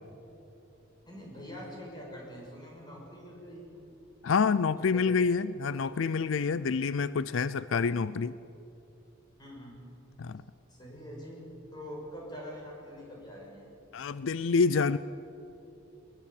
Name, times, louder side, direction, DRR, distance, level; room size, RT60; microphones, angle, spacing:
voice 1, 1.0-3.9 4.7-5.1 9.4-9.8 10.7-11.4 11.7-13.7, equal, 20° left, -1 dB, 6.3 m, -44 dB
voice 2, 4.2-8.4 10.2-10.4 13.9-15.0, left 5 dB, 85° left, 16 dB, 0.5 m, -27 dB
21.5 x 21.0 x 8.6 m, 2.9 s
head